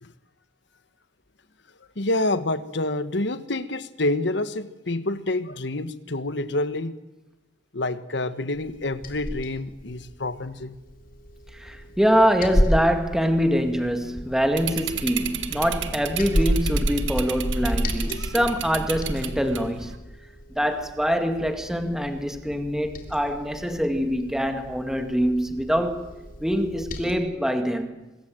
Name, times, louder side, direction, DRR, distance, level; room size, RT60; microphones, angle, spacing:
voice 1, 2.0-7.0 7.7-10.7, left 2 dB, 65° left, 1.4 m, -27 dB
Liquid, 8.5-27.2, equal, 50° left, 3.4 m, -34 dB
voice 2, 11.5-19.9 20.6-26.1 26.4-28.0, equal, 5° right, 2.1 m, -24 dB
sound 1, 14.6-20.0, right 3 dB, 75° right, 1.8 m, -29 dB
24.5 x 22.0 x 7.8 m
head